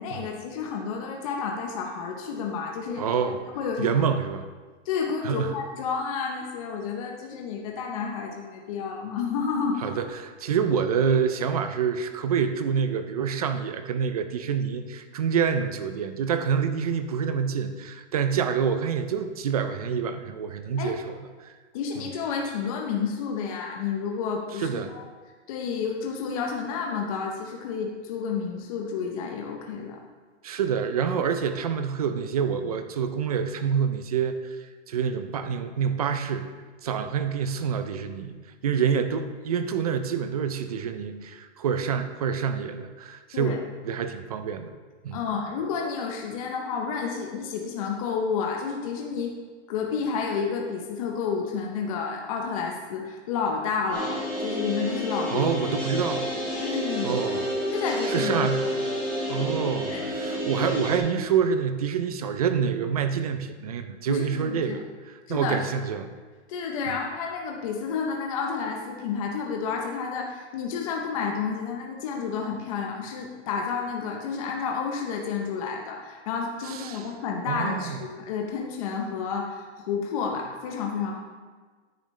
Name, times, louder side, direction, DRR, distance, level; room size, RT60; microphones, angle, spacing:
voice 1, 0.0-3.0 3.5-4.1 4.9-10.0 20.8-21.0 21.7-25.0 25.5-30.0 43.3-43.6 45.1-49.4 49.7-55.5 56.6-57.2 57.7-58.3 59.9-60.1 64.1-64.8 65.3-65.7 66.5-81.2, left 5 dB, 30° left, 1 dB, 0.7 m, -30 dB
voice 2, 3.0-3.4 3.8-4.5 5.2-5.5 9.8-21.5 22.0-22.1 24.6-24.9 30.4-34.4 34.9-36.5 36.8-38.4 38.6-43.6 43.8-44.7 45.0-45.2 55.3-56.3 57.0-57.4 58.1-58.7 59.3-66.1 76.7-77.1 77.5-78.0, right 7 dB, 35° right, 9 dB, 0.4 m, -27 dB
sound 1, 53.9-61.0, equal, 5° left, 2.5 m, -29 dB
10.0 x 9.1 x 3.2 m, 1.4 s
hypercardioid pair, 170°, 36 cm